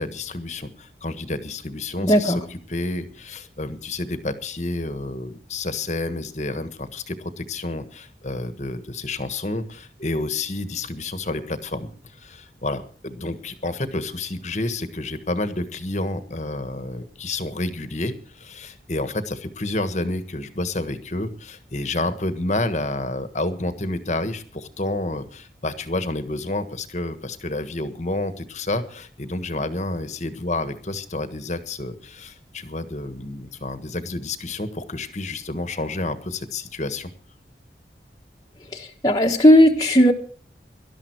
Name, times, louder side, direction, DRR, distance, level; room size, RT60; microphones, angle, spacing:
voice 1, 0.0-37.1, left 2 dB, 40° left, 11 dB, 1.4 m, -29 dB
voice 2, 2.0-2.4 38.7-40.1, equal, 20° left, -1 dB, 1.3 m, -16 dB
18.5 x 12.5 x 4.6 m, 0.42 s
head